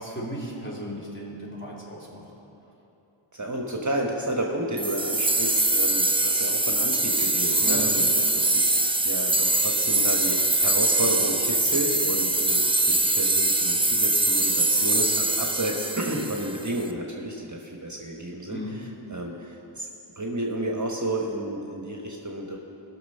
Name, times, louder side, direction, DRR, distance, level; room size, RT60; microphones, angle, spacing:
voice 1, 0.0-2.3 7.6-7.9 18.5-18.8, equal, 25° left, -6 dB, 3.4 m, -36 dB
voice 2, 3.3-18.6 19.1-19.9 20.2-22.6, right 1 dB, 35° right, 0 dB, 1.2 m, -31 dB
sound 1, 4.8-16.8, right 2 dB, 10° right, 0.6 m, -23 dB
18.5 x 6.4 x 5.5 m, 2.9 s
wide cardioid pair, 50°, 50 cm